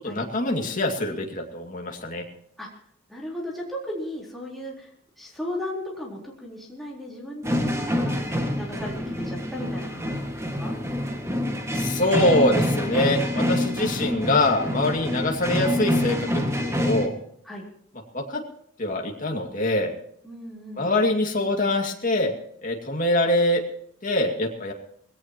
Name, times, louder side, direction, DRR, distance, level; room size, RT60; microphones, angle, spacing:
voice 1, 0.0-2.2 11.7-17.1 18.1-18.4 18.8-19.9 20.8-22.3 22.6-23.6 24.0-24.7, left 1 dB, 40° left, 2 dB, 2.4 m, -24 dB
voice 2, 3.1-4.9 5.2-8.2 8.5-10.7 13.6-14.2 17.4-17.7 20.2-20.9, left 1 dB, ahead, -4 dB, 3.9 m, -36 dB
sound 1, 7.4-17.1, left 1 dB, 15° right, 1.9 m, -26 dB
21.0 x 17.0 x 3.0 m, 0.68 s
head